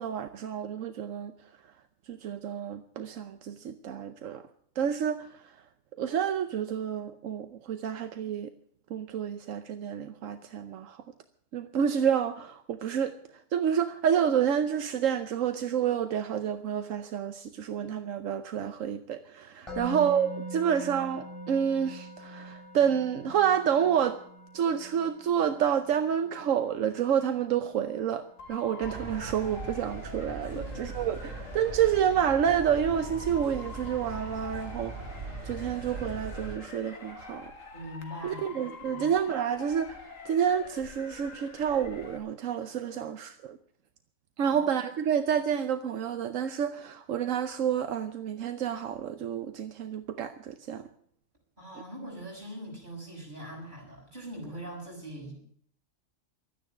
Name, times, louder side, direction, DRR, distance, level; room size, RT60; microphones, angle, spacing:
voice 1, 0.0-1.7 2.1-4.5 4.8-5.6 5.9-8.5 8.9-11.0 11.5-24.2 24.5-37.5 38.2-43.6 44.4-50.9, right 8 dB, 80° right, 1.2 m, -29 dB
Musical instrument, 19.7-30.8, right 1 dB, 20° left, 7.9 m, -44 dB
voice 2, 19.7-20.0 30.5-30.7 37.7-38.5 38.9-39.1 44.4-44.6 51.6-55.3, equal, 40° right, 6.4 m, -42 dB
Motor vehicle (road) / Siren, 28.4-42.2, left 4 dB, 85° left, 2.1 m, -46 dB
sound 1, 28.8-36.6, right 3 dB, 65° right, 2.7 m, -40 dB
12.5 x 9.9 x 9.3 m
omnidirectional pair, 1.3 m